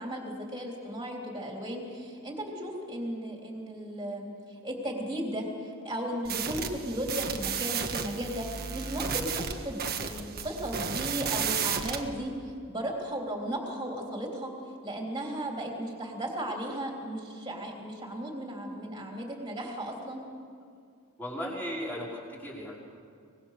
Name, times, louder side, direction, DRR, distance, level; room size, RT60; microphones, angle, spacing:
voice 1, 0.0-8.5 8.7-14.5 14.8-20.2, right 1 dB, 20° right, 0 dB, 3.4 m, -35 dB
sound 1, 6.2-12.0, right 6 dB, 45° right, 1.5 m, -33 dB
voice 2, 21.2-22.7, equal, 10° left, -5 dB, 5.0 m, -36 dB
24.0 x 20.5 x 6.7 m, 2.3 s
head